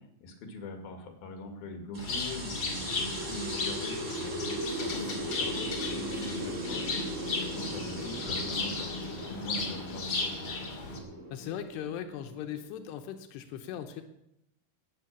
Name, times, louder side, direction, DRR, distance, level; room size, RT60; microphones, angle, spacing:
voice 1, 0.2-7.1 7.5-10.4, left 1 dB, 70° left, 5 dB, 4.0 m, -41 dB
sound 1, 1.9-13.0, right 1 dB, 40° right, 1.0 m, -38 dB
Bird, 2.0-11.0, left 3 dB, 40° left, 3.0 m, -35 dB
voice 2, 11.3-14.0, left 9 dB, 85° left, 7 dB, 3.1 m, -39 dB
13.5 x 9.3 x 9.4 m, 0.84 s
omnidirectional pair, 4.7 m